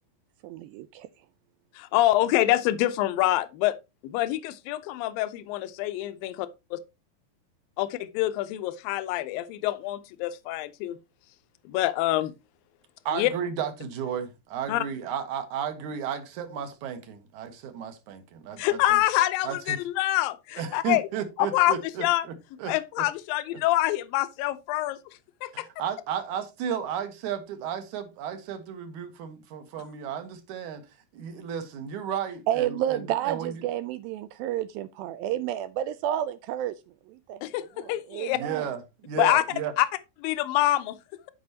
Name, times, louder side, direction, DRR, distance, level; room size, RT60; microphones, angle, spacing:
voice 1, 0.4-1.1 32.5-36.8 37.1-37.4 37.8-38.7, right 12 dB, 85° right, 2.1 m, -30 dB
voice 2, 1.8-3.8 4.0-6.8 7.8-11.0 11.7-12.3 13.1-13.3 14.7-14.8 18.6-21.0 21.4-22.3 22.7-25.0 25.4-25.7 37.4-38.4 39.2-39.4 39.8-39.9 40.2-41.0, left 15 dB, 75° left, 2.2 m, -26 dB
voice 3, 13.1-19.0 19.4-19.8 20.6-23.1 25.5-30.8 31.1-33.6 38.4-39.7, right 8 dB, 65° right, 2.0 m, -34 dB
14.0 x 5.2 x 2.8 m
omnidirectional pair, 4.7 m